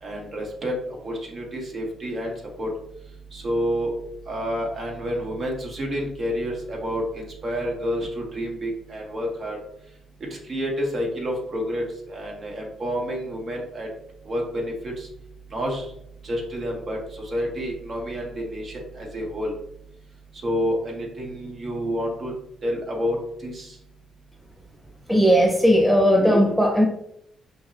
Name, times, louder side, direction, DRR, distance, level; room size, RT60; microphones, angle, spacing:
voice 1, 0.0-2.7 3.3-3.9 4.3-9.6 10.3-13.9 14.3-15.1 15.5-15.9 16.2-19.5 20.4-22.3 22.6-23.2 23.4-23.7, equal, 45° right, -1 dB, 1.3 m, -29 dB
voice 2, 25.1-26.9, equal, 5° right, 2 dB, 0.4 m, -17 dB
5.7 x 2.1 x 2.8 m, 0.75 s
cardioid pair, 90°, 0 cm